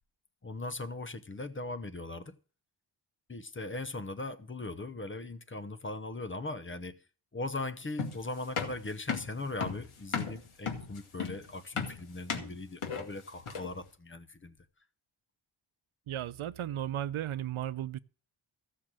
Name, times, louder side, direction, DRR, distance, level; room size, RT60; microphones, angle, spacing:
voice 1, 0.4-2.3 3.3-7.0 7.3-14.6, left 2 dB, 25° left, 0.9 m, -39 dB
sound 1, 8.0-13.8, left 6 dB, 80° left, 2.3 m, -36 dB
voice 2, 16.1-18.0, right 11 dB, 80° right, 0.7 m, -35 dB
15.0 x 6.5 x 7.5 m
wide cardioid pair, 150°, 49 cm